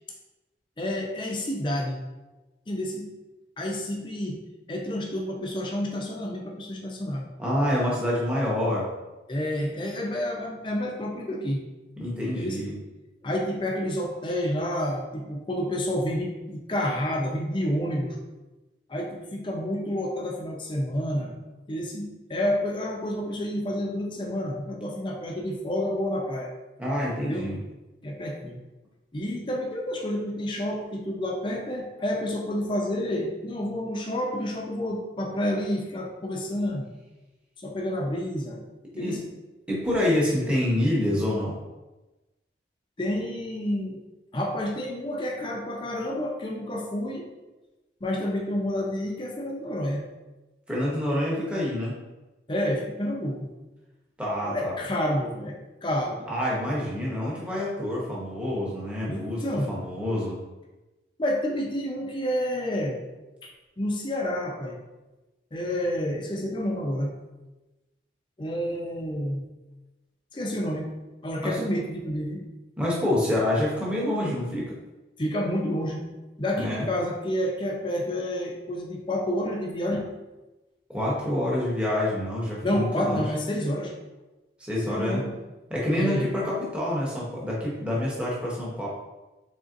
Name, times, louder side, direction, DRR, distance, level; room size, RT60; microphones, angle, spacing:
voice 1, 0.8-2.0 2.7-3.1 3.6-4.4 4.7-7.2 9.3-11.6 12.4-12.7 13.2-18.2 18.9-21.3 21.7-26.5 27.2-27.5 28.0-28.6 29.1-36.9 37.6-38.6 39.0-39.2 43.0-44.0 44.3-47.2 48.0-50.0 52.5-53.5 54.4-55.6 55.8-56.2 59.1-59.7 61.2-63.0 63.4-64.8 65.5-67.1 68.4-69.4 70.3-70.9 71.2-72.4 75.2-76.0 76.4-80.1 82.6-83.9 84.9-85.3 86.0-86.3, left 1 dB, 25° left, 0 dB, 0.5 m, -29 dB
voice 2, 7.4-8.9 12.0-12.7 26.8-27.6 38.9-39.2 39.7-41.6 50.7-51.9 54.2-54.7 56.3-60.4 71.4-71.6 72.8-74.8 76.5-76.9 80.9-83.2 84.6-85.2 85.7-88.9, left 1 dB, 5° right, -6 dB, 0.8 m, -27 dB
3.9 x 3.4 x 2.5 m, 1.1 s
head